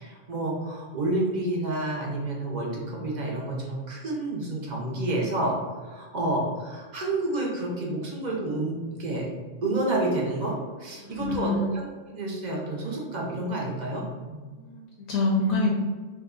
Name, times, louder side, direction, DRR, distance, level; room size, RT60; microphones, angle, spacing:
voice 1, 0.0-5.6 5.8-9.3 9.6-14.5, right 2 dB, 45° right, -2 dB, 0.6 m, -29 dB
voice 2, 11.0-11.7 14.5-15.7, left 2 dB, 70° left, -2 dB, 0.9 m, -26 dB
2.7 x 2.2 x 3.6 m, 1.4 s
omnidirectional pair, 1.4 m